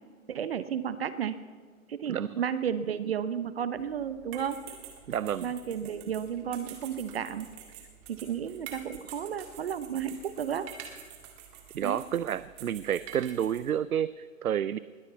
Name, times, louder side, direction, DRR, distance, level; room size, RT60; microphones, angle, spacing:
voice 1, 0.3-1.4 1.9-4.6 5.4-7.5 8.1-10.7 11.8-12.0, right 8 dB, 45° right, 13 dB, 0.9 m, -33 dB
voice 2, 2.1-2.4 5.1-5.5 11.7-14.8, right 9 dB, 90° right, 17 dB, 0.6 m, -30 dB
sound 1, 3.8-13.7, right 8 dB, 20° right, 2.0 m, -48 dB
20.5 x 8.5 x 8.1 m, 1.5 s
hypercardioid pair, 150°, 42 cm